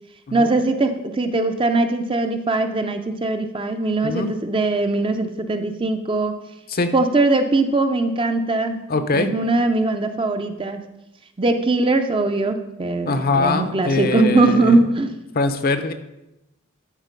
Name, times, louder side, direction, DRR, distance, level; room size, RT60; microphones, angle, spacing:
voice 1, 0.3-6.4 6.9-8.8 9.1-10.8 11.4-15.2, right 2 dB, 25° right, 7 dB, 0.5 m, -21 dB
voice 2, 8.9-9.3 13.1-14.8 15.3-15.9, left 3 dB, 45° left, 9 dB, 0.6 m, -22 dB
12.0 x 4.5 x 5.2 m, 0.91 s
head